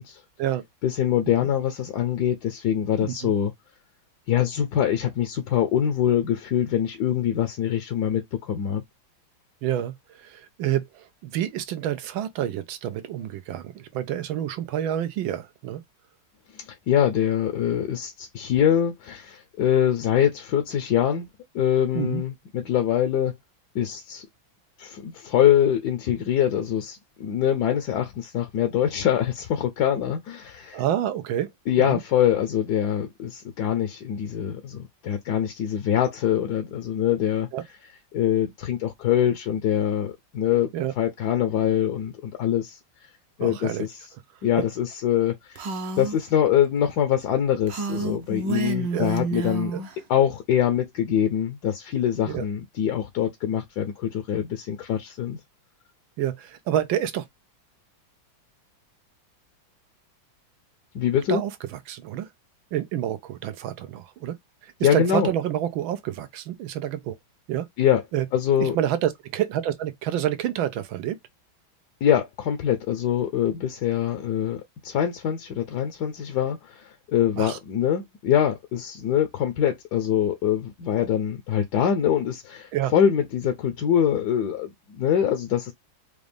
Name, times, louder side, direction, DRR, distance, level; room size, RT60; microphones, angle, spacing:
voice 1, 0.8-3.5 4.3-8.8 16.5-21.3 21.5-23.4 23.7-24.2 24.8-30.8 31.7-37.5 38.1-40.7 41.0-42.8 43.4-44.0 44.4-45.7 46.0-49.7 50.1-55.4 60.9-61.4 64.8-65.3 67.8-68.0 68.3-68.8 72.0-85.7, left 9 dB, 65° left, 1.1 m, -24 dB
voice 2, 3.0-3.3 9.6-15.8 21.9-22.2 30.7-31.5 31.8-32.0 37.5-37.6 40.7-40.9 43.4-43.9 48.9-49.1 49.7-49.8 52.3-52.5 56.2-57.2 61.3-62.3 62.7-64.3 64.6-67.1 67.5-67.7 68.1-68.3 68.6-71.2 77.4-77.6 82.7-82.9, right 11 dB, 85° right, 1.5 m, -28 dB
Female speech woman speaking, 45.6-46.2 47.7-49.9, right 3 dB, 70° right, 1.6 m, -29 dB
5.0 x 2.5 x 3.3 m
omnidirectional pair, 2.2 m